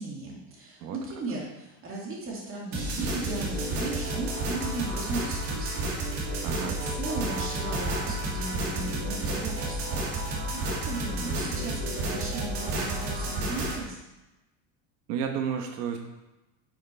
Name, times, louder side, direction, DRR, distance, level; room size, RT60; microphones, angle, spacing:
voice 1, 0.0-5.9 6.1-10.0 10.6-14.0, right 2 dB, 30° right, -3 dB, 2.4 m, -37 dB
sound 1, 2.7-13.8, right 1 dB, 60° right, 2.7 m, -31 dB
voice 2, 6.4-6.8 15.1-16.0, right 7 dB, 85° right, 3 dB, 1.2 m, -31 dB
10.0 x 6.6 x 3.4 m, 1.0 s
supercardioid pair, 145°, 46 cm